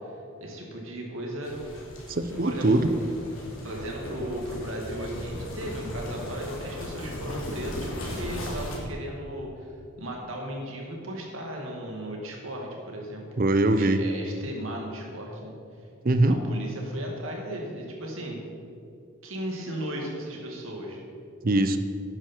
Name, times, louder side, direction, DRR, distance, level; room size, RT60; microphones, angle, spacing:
voice 1, 0.0-1.8 2.4-2.8 3.6-13.3 13.8-15.6 16.3-18.4 19.2-21.0, right 1 dB, 75° right, 0 dB, 2.1 m, -36 dB
sound 1, 1.4-8.8, left 1 dB, 80° left, 2.7 m, -37 dB
voice 2, 2.1-2.9 13.4-14.0 16.0-16.4 21.4-21.8, right 2 dB, 45° right, 10 dB, 0.6 m, -22 dB
11.5 x 9.6 x 4.5 m, 2.5 s
head